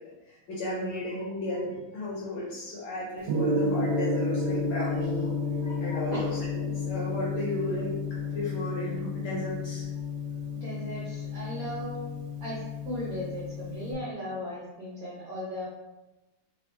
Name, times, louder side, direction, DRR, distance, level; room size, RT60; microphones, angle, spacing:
voice 1, 0.3-5.3 5.6-9.8, left 1 dB, 80° left, -6 dB, 1.7 m, -34 dB
Gong, 3.3-13.9, left 3 dB, 80° right, 1.4 m, -31 dB
voice 2, 10.6-12.1 12.4-15.6, equal, 55° right, -7 dB, 1.0 m, -37 dB
3.6 x 2.7 x 3.3 m, 1.0 s
omnidirectional pair, 2.3 m